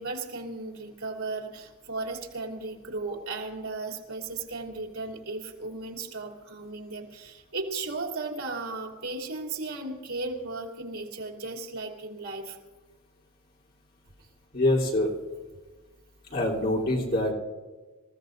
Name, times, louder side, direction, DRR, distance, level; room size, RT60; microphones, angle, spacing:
voice 1, 0.0-12.6, right 3 dB, 85° right, 1 dB, 3.1 m, -35 dB
voice 2, 14.5-15.1 16.3-17.3, left 1 dB, 45° left, -4 dB, 3.5 m, -25 dB
27.0 x 16.0 x 2.7 m, 1.3 s
head